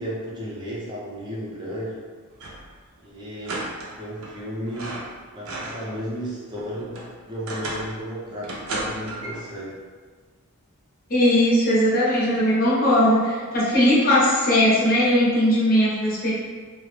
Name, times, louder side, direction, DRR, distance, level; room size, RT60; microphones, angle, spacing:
voice 1, 0.0-2.0 3.0-5.0 5.3-9.8, equal, 20° right, -6 dB, 0.5 m, -34 dB
sound 1, 2.3-2.7 3.0-3.1 3.4-4.4 4.7-6.0 6.3-8.0 8.4-9.5, right 2 dB, 75° right, 0.5 m, -34 dB
voice 2, 11.1-16.3, left 1 dB, 40° left, -7 dB, 0.7 m, -19 dB
2.3 x 2.0 x 3.1 m, 1.5 s
head